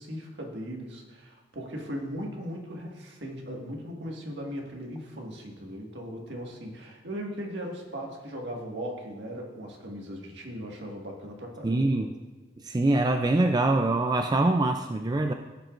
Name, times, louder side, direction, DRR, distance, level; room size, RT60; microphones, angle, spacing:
voice 1, 0.0-12.1, equal, 70° right, 0 dB, 1.8 m, -38 dB
voice 2, 11.6-12.1 12.6-15.3, right 2 dB, 20° right, 5 dB, 0.4 m, -24 dB
16.0 x 7.8 x 2.5 m, 1.3 s
head